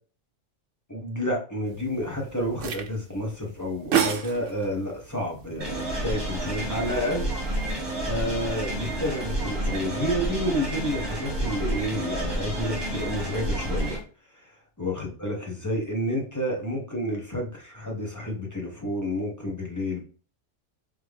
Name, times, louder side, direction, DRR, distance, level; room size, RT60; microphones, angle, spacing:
voice 1, 0.9-7.3 8.0-14.0 14.3-14.5 14.8-20.0, equal, 15° left, -1 dB, 0.9 m, -30 dB
sound 1, 1.7-9.4, right 8 dB, 85° right, 1.0 m, -34 dB
sound 2, 5.6-14.0, right 1 dB, 20° right, 1.5 m, -30 dB
3.5 x 3.3 x 3.3 m, 0.39 s
omnidirectional pair, 1.3 m